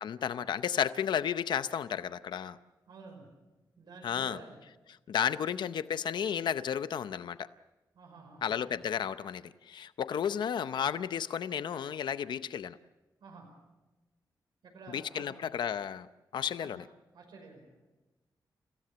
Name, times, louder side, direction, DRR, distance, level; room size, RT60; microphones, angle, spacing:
voice 1, 0.0-2.6 4.0-4.4 5.1-7.5 8.4-12.8 14.9-16.1 16.3-16.8, left 8 dB, 85° left, 13 dB, 0.7 m, -33 dB
voice 2, 2.9-3.3 3.8-4.6 5.4-5.5 7.9-8.5 10.1-10.2 13.2-13.5 14.6-15.3 16.6-16.7 17.1-17.7, right 4 dB, 80° right, 2 dB, 5.5 m, -50 dB
29.5 x 16.5 x 6.9 m, 1.1 s
wide cardioid pair, 125°, 8 cm